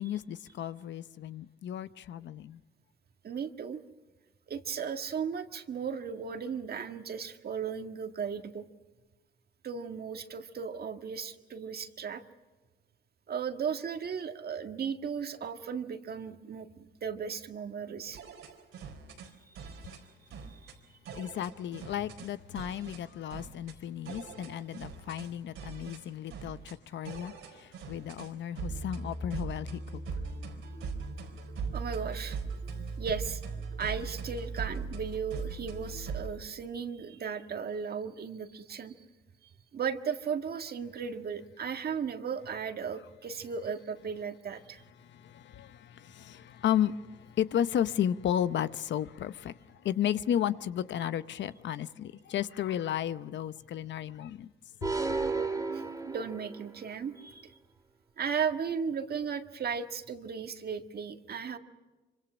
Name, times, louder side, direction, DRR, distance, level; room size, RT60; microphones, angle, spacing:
voice 1, 0.0-2.6 21.2-30.0 45.0-54.5 54.8-55.2, left 10 dB, 65° left, 0.8 m, -33 dB
voice 2, 3.2-3.8 4.5-8.7 9.6-12.2 13.3-18.2 19.5-19.6 20.5-20.7 31.7-32.4 33.0-33.4 33.8-39.0 39.7-44.8 55.7-57.5 58.2-61.6, right 6 dB, 50° right, 1.8 m, -36 dB
sound 1, 18.1-19.3 19.5-20.0 20.3-20.7 21.0-22.3 22.5-23.0 23.3-23.7 24.0-25.3 25.5-26.0 26.3-26.7 27.0-28.3 28.5-36.3, right 4 dB, 85° right, 4.1 m, -40 dB
sound 2, 54.8-56.8, right 3 dB, 15° right, 2.9 m, -33 dB
25.5 x 25.0 x 6.2 m
cardioid pair, 90°, 20 cm